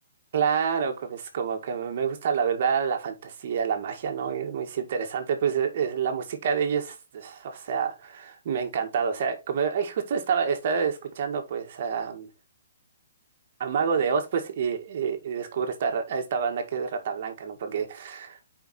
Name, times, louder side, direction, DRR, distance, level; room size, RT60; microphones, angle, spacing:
voice 1, 0.3-12.3 13.6-18.5, right 6 dB, 50° right, 1.9 m, -28 dB
5.2 x 4.7 x 5.9 m
hypercardioid pair, 160°, 0 cm